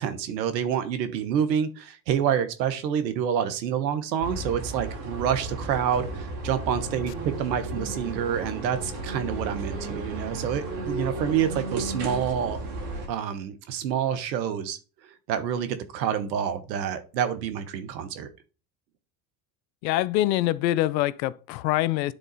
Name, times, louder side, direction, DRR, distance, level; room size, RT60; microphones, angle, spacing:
voice 1, 0.0-12.6 13.1-14.8 15.3-18.3, right 8 dB, 80° right, 1.2 m, -28 dB
sound 1, 4.2-13.1, right 2 dB, 60° right, 3.1 m, -34 dB
voice 2, 19.8-22.1, left 15 dB, 80° left, 0.6 m, -24 dB
9.9 x 3.9 x 4.0 m
hypercardioid pair, 80°, 50 cm